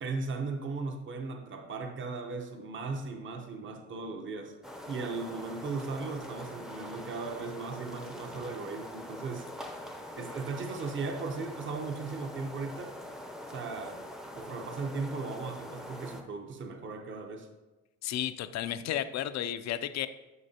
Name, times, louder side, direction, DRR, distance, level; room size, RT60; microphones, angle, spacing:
voice 1, 0.0-4.6 4.9-9.7 10.2-13.0 13.5-14.0 14.3-17.5, right 4 dB, 40° right, 5 dB, 0.9 m, -37 dB
sound 1, 4.6-16.2, left 1 dB, ahead, 0.6 m, -44 dB
voice 2, 18.0-20.1, left 11 dB, 60° left, 12 dB, 0.5 m, -33 dB
11.0 x 5.9 x 2.8 m, 1.1 s
cardioid pair, 130°, 31 cm